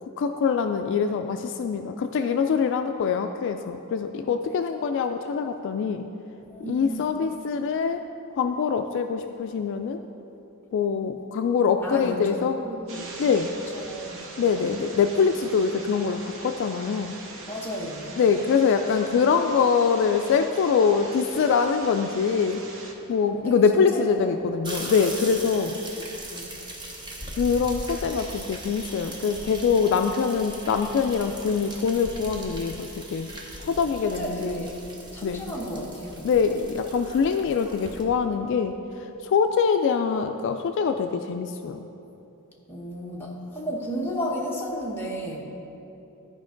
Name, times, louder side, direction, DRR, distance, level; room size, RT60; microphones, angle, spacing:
voice 1, 0.0-6.1 6.7-8.1 8.3-10.0 10.7-12.6 13.2-13.5 14.4-17.1 18.2-22.6 23.1-25.8 27.4-33.3 33.6-34.7 35.2-35.5 36.2-41.9, left 6 dB, 55° left, 7 dB, 0.3 m, -24 dB
voice 2, 6.4-7.0 11.8-13.1 13.7-14.2 17.5-18.1 23.3-24.2 26.3-26.5 33.8-34.7 35.1-36.3 42.7-45.4, equal, 10° left, -3 dB, 1.0 m, -33 dB
sound 1, 12.9-22.9, right 3 dB, 65° right, 0.9 m, -42 dB
sound 2, 24.6-38.0, right 1 dB, 20° right, 1.0 m, -39 dB
12.5 x 5.1 x 3.8 m, 2.9 s
head